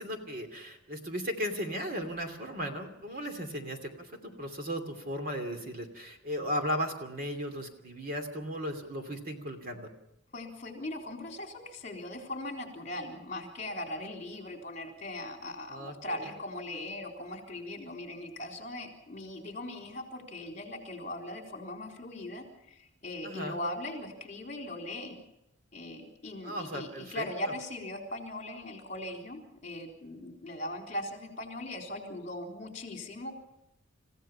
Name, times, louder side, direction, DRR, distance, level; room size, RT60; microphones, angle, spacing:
voice 1, 0.0-9.9 15.7-16.1 23.2-23.6 26.4-27.5, equal, 40° right, 5 dB, 2.7 m, -36 dB
voice 2, 10.3-25.2 25.7-33.3, left 1 dB, 35° left, 2 dB, 3.9 m, -39 dB
29.5 x 16.0 x 5.7 m, 0.85 s
head